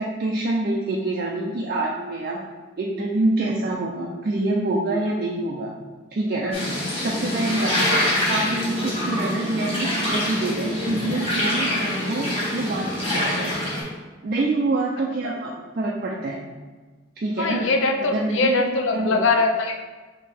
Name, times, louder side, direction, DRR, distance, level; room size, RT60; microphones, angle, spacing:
voice 1, 0.0-2.4 2.8-5.7 6.1-7.8 8.3-13.6 14.2-16.4 17.2-17.7 18.1-18.6 18.9-19.3, right 2 dB, 50° right, -2 dB, 0.4 m, -26 dB
sound 1, 6.5-13.8, left 1 dB, 30° left, 1.4 m, -25 dB
voice 2, 17.4-19.8, left 3 dB, 85° left, 4 dB, 0.5 m, -22 dB
5.2 x 2.8 x 3.4 m, 1.3 s
head